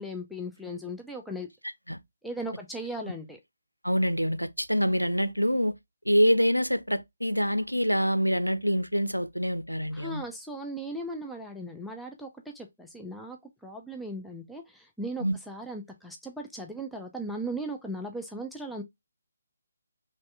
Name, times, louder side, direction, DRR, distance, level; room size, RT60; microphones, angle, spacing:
voice 1, 0.0-1.5 2.2-3.4 9.9-12.3 12.5-13.4 13.6-18.8, right 1 dB, ahead, 0.4 m, -37 dB
voice 2, 3.8-5.8 6.1-10.3 15.2-15.3, equal, 90° right, 0.5 m, -25 dB
3.1 x 2.7 x 3.3 m
figure-of-eight pair, 145°, 0 cm